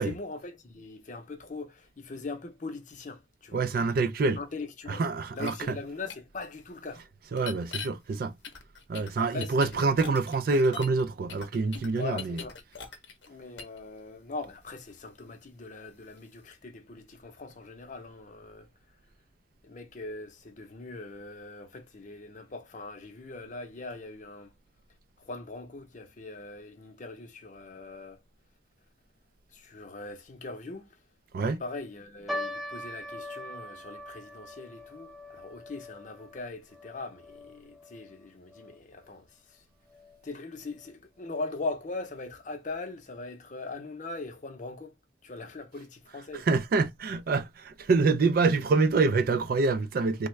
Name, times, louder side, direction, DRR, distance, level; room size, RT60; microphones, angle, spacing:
voice 1, 0.0-3.7 4.4-5.0 5.3-7.0 9.2-9.9 12.0-12.6 13.3-18.7 19.6-24.5 25.2-28.2 29.5-31.0 31.5-39.6 40.2-44.9 45.2-46.5, left 3 dB, 45° left, 0.6 m, -41 dB
voice 2, 3.5-4.4 4.9-5.8 7.3-8.3 8.9-12.5 31.3-31.6 46.1-50.3, right 3 dB, 50° right, 0.4 m, -26 dB
sound 1, 5.4-5.5 6.1-6.2 7.4-7.9 8.4-11.0 11.3-13.3 13.6-13.8, left 6 dB, 80° left, 0.7 m, -41 dB
sound 2, 32.3-38.8 39.0-39.1 39.9-40.2 40.8-40.9 41.2-41.4, left 1 dB, ahead, 0.5 m, -41 dB
3.4 x 2.2 x 3.1 m
head